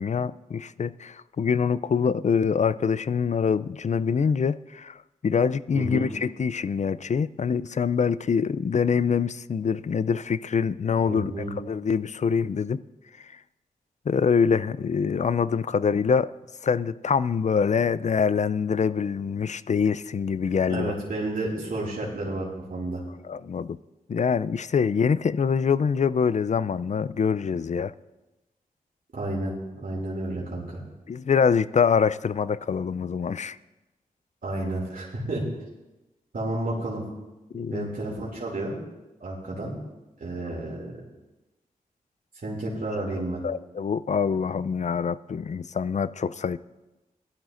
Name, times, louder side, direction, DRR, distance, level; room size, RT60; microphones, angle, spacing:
voice 1, 0.0-5.0 5.2-11.3 11.7-12.8 14.1-16.3 16.6-20.9 23.3-23.8 24.1-27.9 31.1-33.6 37.5-37.9 43.4-46.6, left 6 dB, 50° left, 17 dB, 0.4 m, -25 dB
voice 2, 5.7-6.1 11.1-11.5 20.7-23.0 29.1-30.8 34.4-35.4 36.3-37.0 37.7-38.8 39.2-39.7 40.2-40.9 42.4-43.4, right 2 dB, 70° right, -4 dB, 2.6 m, -31 dB
17.0 x 12.0 x 2.6 m, 1.0 s
cardioid pair, 40°, 15 cm